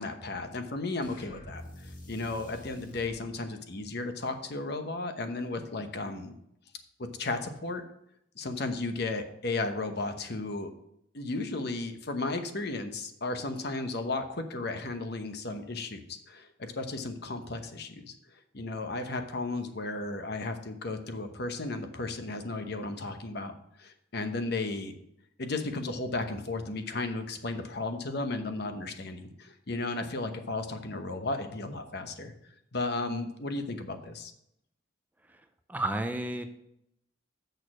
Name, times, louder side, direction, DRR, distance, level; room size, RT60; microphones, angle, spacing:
voice 1, 0.0-6.3 7.2-7.8 8.4-10.7 11.1-18.1 18.5-23.5 23.8-24.9 25.4-32.3 32.7-34.3, left 2 dB, 60° left, 7 dB, 1.0 m, -34 dB
sound 1, 1.0-3.2, left 1 dB, 45° left, 1.6 m, -47 dB
voice 2, 35.2-36.4, right 1 dB, 10° right, 7 dB, 0.5 m, -33 dB
6.7 x 6.5 x 6.2 m, 0.77 s
head